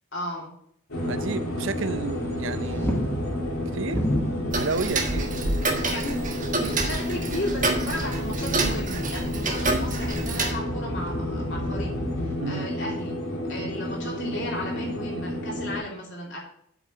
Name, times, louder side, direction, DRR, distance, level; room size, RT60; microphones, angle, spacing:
voice 1, 0.1-0.5 5.7-6.1 6.5-11.9 12.2-13.1 13.5-16.4, left 1 dB, 55° left, 3.0 m, -35 dB
sound 1, 0.9-15.8, left 1 dB, 75° left, 3.4 m, -31 dB
voice 2, 1.1-3.1 3.7-4.1 4.6-5.3 12.4-12.7, right 4 dB, 60° right, 0.6 m, -31 dB
sound 2, 1.5-12.4, equal, 10° left, 1.3 m, -33 dB
Tick-tock, 4.5-10.5, right 2 dB, 35° right, 1.4 m, -28 dB
8.4 x 5.3 x 7.6 m
head